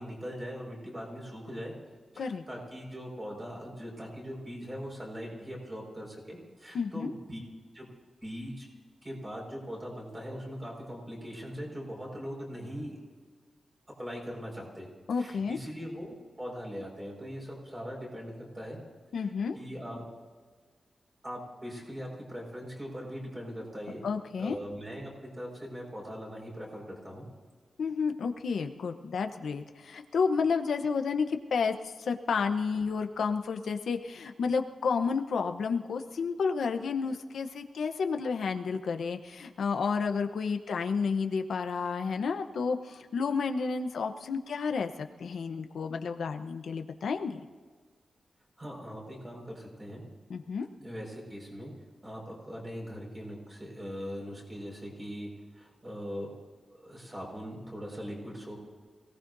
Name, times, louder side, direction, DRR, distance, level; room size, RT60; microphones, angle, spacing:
voice 1, 0.0-1.7 2.1-7.4 7.7-7.9 8.2-8.7 9.0-13.0 14.0-14.9 15.2-18.8 19.2-20.0 21.2-24.0 24.4-27.3 48.6-50.0 50.8-51.7 52.0-56.3 56.7-58.6, equal, 20° right, -2 dB, 5.3 m, -41 dB
voice 2, 6.7-7.1 15.1-15.6 19.1-19.6 24.0-24.6 27.8-47.4 50.3-50.7, left 5 dB, 85° left, 6 dB, 0.9 m, -31 dB
27.0 x 18.0 x 2.7 m, 1.5 s
wide cardioid pair, 175°, 0 cm